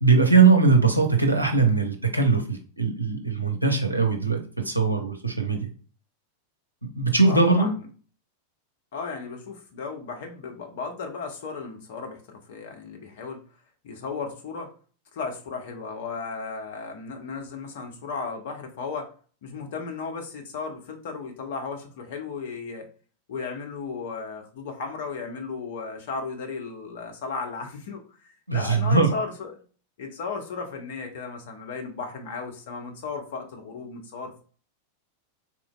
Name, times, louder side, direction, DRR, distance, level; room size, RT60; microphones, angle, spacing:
voice 1, 0.0-5.7 7.0-7.7 28.5-29.1, right 4 dB, 85° right, 3 dB, 0.7 m, -20 dB
voice 2, 7.3-7.9 8.9-13.4 13.8-14.7 15.1-19.1 19.4-22.9 23.3-29.6 30.0-34.4, left 4 dB, 55° left, 4 dB, 0.8 m, -35 dB
3.8 x 3.0 x 2.3 m, 0.40 s
figure-of-eight pair, 90°, 0 cm